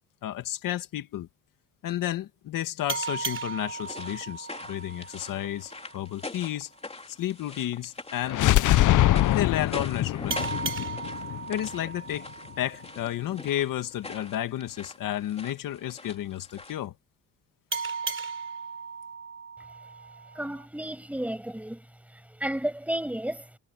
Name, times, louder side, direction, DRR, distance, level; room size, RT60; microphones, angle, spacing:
voice 1, 0.2-1.3 1.8-6.7 7.1-8.7 9.3-10.5 11.5-12.3 12.6-16.9, left 12 dB, 85° left, 2.0 m, -32 dB
sound 1, 2.9-6.1 10.3-13.5 17.7-20.7, right 5 dB, 40° right, 5.9 m, -36 dB
sound 2, 3.6-16.9, left 3 dB, 20° left, 3.4 m, -43 dB
sound 3, 8.3-12.1, left 14 dB, 70° left, 0.7 m, -23 dB
voice 2, 20.3-21.8 22.1-23.5, right 1 dB, 5° right, 6.5 m, -32 dB
cardioid pair, 115°, 32 cm